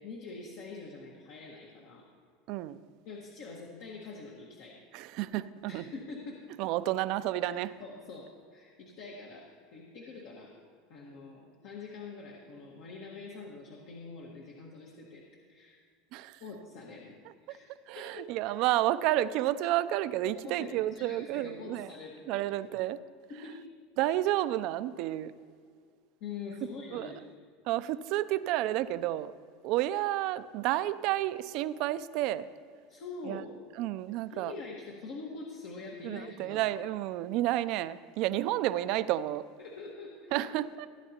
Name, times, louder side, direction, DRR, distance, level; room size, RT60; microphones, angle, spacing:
voice 1, 0.0-2.0 3.0-4.8 5.7-6.4 7.4-10.5 10.9-15.8 16.4-17.1 17.5-17.7 17.9-18.5 20.2-22.5 23.3-23.6 26.2-27.2 32.9-33.5 34.3-36.7 39.6-40.5, left 4 dB, 65° left, 1.6 m, -45 dB
voice 2, 2.5-2.8 4.9-5.8 6.6-7.7 16.1-16.4 17.5-17.6 17.9-21.9 22.3-23.0 24.0-25.3 26.9-27.1 27.7-29.3 29.6-32.5 33.3-33.4 33.8-34.5 36.0-39.4 40.3-40.9, right 14 dB, 60° right, 0.4 m, -31 dB
16.0 x 9.0 x 2.9 m
hypercardioid pair, 100°, 0 cm